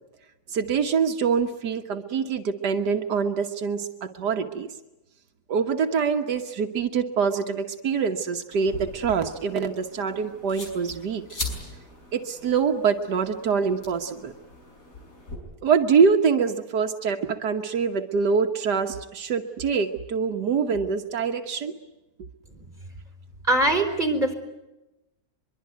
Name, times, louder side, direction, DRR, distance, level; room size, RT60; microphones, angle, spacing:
voice 1, 0.5-4.7 5.5-11.2 12.1-14.3 15.6-21.7, right 6 dB, 85° right, 5 dB, 1.8 m, -25 dB
sound 1, 8.5-15.4, left 2 dB, 55° left, 6.1 m, -40 dB
voice 2, 23.4-24.3, right 1 dB, 30° right, 6 dB, 4.2 m, -22 dB
24.0 x 23.5 x 9.3 m, 0.97 s
omnidirectional pair, 1.7 m